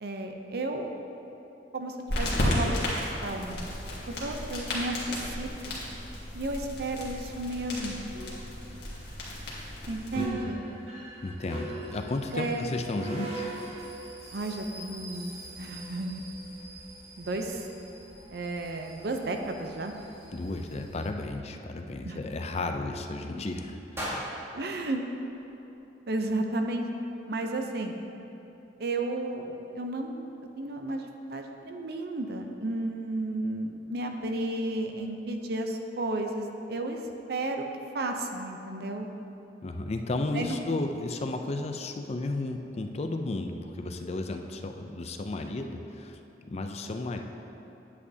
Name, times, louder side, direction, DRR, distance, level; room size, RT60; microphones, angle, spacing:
voice 1, 0.0-0.9 1.7-2.8 3.2-3.7 4.1-5.7 6.3-8.0 9.9-10.6 12.3-12.7 14.3-16.2 17.2-17.7 18.3-19.9 22.0-22.2 24.5-25.0 26.1-26.8 27.3-28.0 28.8-37.0 37.3-37.6 37.9-39.1 40.3-40.6, right 2 dB, 60° right, 4 dB, 0.6 m, -33 dB
sound 1, 2.1-10.2, left 1 dB, 65° left, 1.8 m, -33 dB
sound 2, 7.6-21.1, right 2 dB, 40° right, 1.6 m, -44 dB
voice 2, 10.2-10.5 11.2-13.5 20.3-24.3 39.6-46.2 46.5-47.2, left 2 dB, 35° left, 5 dB, 0.4 m, -33 dB
sound 3, 23.9-26.1, equal, 15° right, 1.3 m, -39 dB
9.7 x 8.3 x 2.8 m, 2.9 s
head